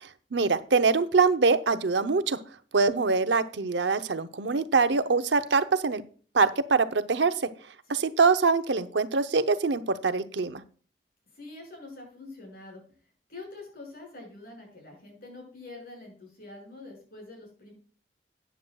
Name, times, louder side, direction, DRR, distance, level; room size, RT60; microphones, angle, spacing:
voice 1, 0.0-2.4 2.7-6.0 6.3-7.3 7.9-10.6, right 4 dB, 80° right, 11 dB, 0.7 m, -24 dB
voice 2, 11.3-12.8 13.3-17.7, left 2 dB, 55° left, 0 dB, 5.7 m, -45 dB
13.5 x 9.3 x 2.3 m, 0.42 s
head